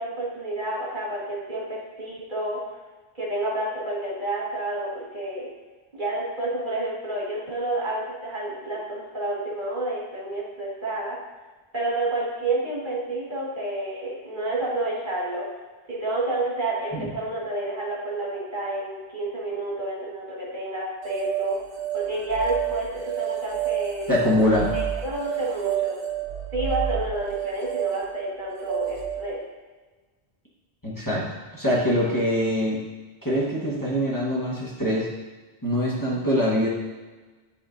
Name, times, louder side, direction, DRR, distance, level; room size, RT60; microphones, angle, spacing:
voice 1, 0.0-2.6 3.2-5.5 5.9-11.2 11.7-15.5 15.9-21.6 21.9-24.1 24.7-26.0 26.5-29.4, right 2 dB, 45° right, -6 dB, 1.8 m, -29 dB
sound 1, 21.0-29.3, right 11 dB, 80° right, 0.9 m, -30 dB
voice 2, 24.1-24.7 30.8-31.2 31.5-32.8 33.2-35.1 35.6-36.7, equal, 20° left, -7 dB, 1.2 m, -23 dB
11.0 x 3.8 x 2.6 m, 1.3 s
omnidirectional pair, 1.1 m